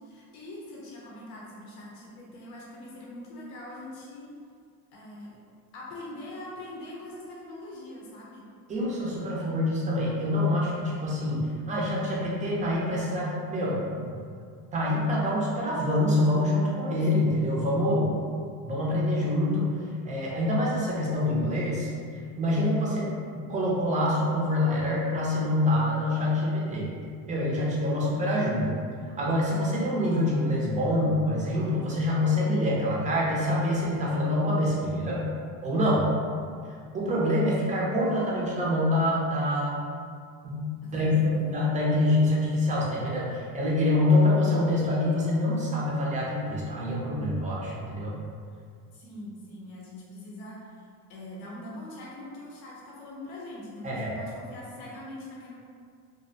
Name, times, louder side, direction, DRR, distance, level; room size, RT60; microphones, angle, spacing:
voice 1, 0.0-4.3 4.9-5.4 5.7-8.5 40.8-41.6 48.9-55.5, left 1 dB, 85° left, -4 dB, 0.6 m, -43 dB
voice 2, 8.7-14.1 14.7-18.1 18.6-19.8 20.0-21.9 22.4-23.1 23.5-26.9 27.3-28.7 29.2-35.2 35.6-36.1 36.9-39.8 40.4-48.1 53.8-54.1, left 1 dB, 20° right, -5 dB, 0.4 m, -26 dB
2.5 x 2.1 x 2.6 m, 2.2 s
cardioid pair, 145°, 37 cm